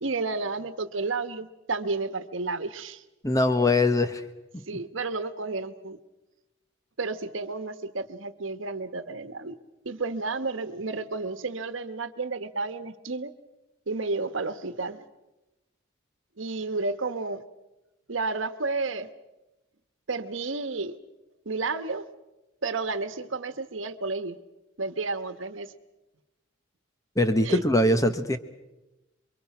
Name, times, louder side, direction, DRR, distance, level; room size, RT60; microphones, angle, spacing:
voice 1, 0.0-3.0 4.7-6.0 7.0-9.6 9.8-13.3 13.9-15.0 16.4-17.4 18.1-19.1 20.1-20.9 21.4-22.1 22.6-24.4 24.8-25.7 27.4-27.6, right 3 dB, 85° right, 11 dB, 1.2 m, -31 dB
voice 2, 3.2-4.2 4.5-4.6 27.2-28.4, left 2 dB, 15° left, 9 dB, 1.1 m, -22 dB
27.5 x 23.0 x 6.0 m, 1.0 s
head